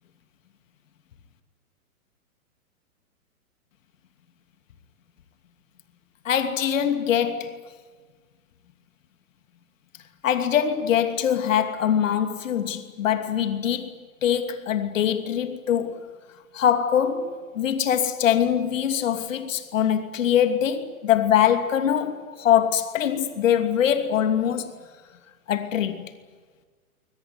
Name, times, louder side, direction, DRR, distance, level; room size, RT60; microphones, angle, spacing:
voice 1, 6.2-7.6 10.2-13.9 14.2-16.1 16.5-24.7 25.5-26.1, left 9 dB, 60° left, 2.8 m, -23 dB
22.5 x 21.0 x 9.8 m
hypercardioid pair, 130°, 43 cm